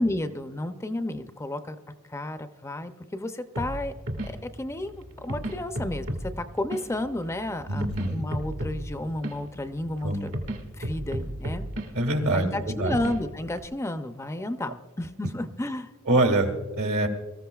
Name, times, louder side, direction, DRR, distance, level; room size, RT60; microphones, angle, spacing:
voice 1, 0.0-1.8 2.1-3.9 4.2-10.3 10.7-11.6 12.3-15.9, left 1 dB, 15° left, 8 dB, 0.5 m, -32 dB
sound 1, 3.5-13.6, right 1 dB, 65° right, 1.8 m, -35 dB
voice 2, 7.7-8.3 10.0-10.2 11.9-12.9 16.1-17.1, right 2 dB, 80° right, 4 dB, 2.0 m, -25 dB
24.0 x 14.0 x 2.3 m, 1.2 s
head